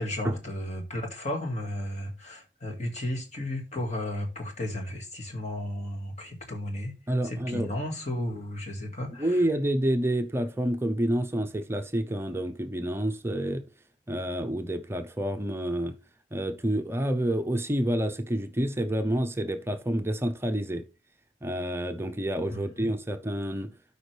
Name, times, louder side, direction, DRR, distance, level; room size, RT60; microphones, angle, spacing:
voice 1, 0.0-6.9 7.2-9.4 22.5-22.9, left 1 dB, 40° left, 2.0 m, -34 dB
voice 2, 7.1-7.7 9.2-13.6 14.1-15.9 16.3-20.8 21.4-23.7, right 1 dB, 15° right, 0.6 m, -28 dB
12.5 x 5.2 x 3.3 m
head